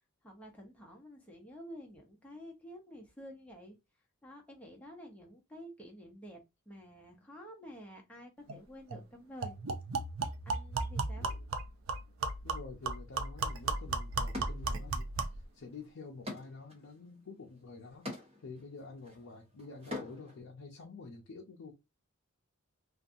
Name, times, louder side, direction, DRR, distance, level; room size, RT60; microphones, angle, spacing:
voice 1, 0.2-3.8 4.2-9.6 10.5-11.3, equal, 5° left, 0.7 m, -50 dB
sound 1, 8.5-8.6 8.9-9.0 9.4-15.4, right 3 dB, 65° right, 0.4 m, -35 dB
voice 2, 11.1-11.5 12.4-18.1 18.4-21.7, left 4 dB, 65° left, 0.5 m, -49 dB
sound 2, 13.5-13.6 14.3-15.3 15.6-20.4, left 2 dB, 30° right, 1.0 m, -45 dB
2.6 x 2.3 x 2.5 m
head